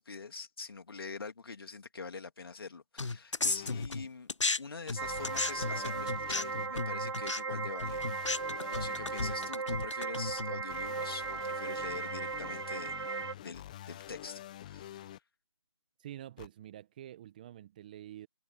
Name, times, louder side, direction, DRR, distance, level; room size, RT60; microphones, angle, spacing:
voice 1, 0.0-4.3 4.6-13.0 13.4-15.1, left 4 dB, 50° left, 3.0 m, -45 dB
sound 1, 3.0-4.6 4.9-10.6, left 3 dB, 75° left, 1.0 m, -35 dB
sound 2, 3.4-3.8 5.0-6.7 7.9-9.5 10.7-15.2 16.4-16.5, left 12 dB, 15° left, 1.0 m, -47 dB
sound 3, 5.0-13.3, right 4 dB, 60° right, 0.8 m, -37 dB
voice 2, 16.0-18.3, right 12 dB, 15° right, 1.3 m, -47 dB
figure-of-eight pair, 160°, 16 cm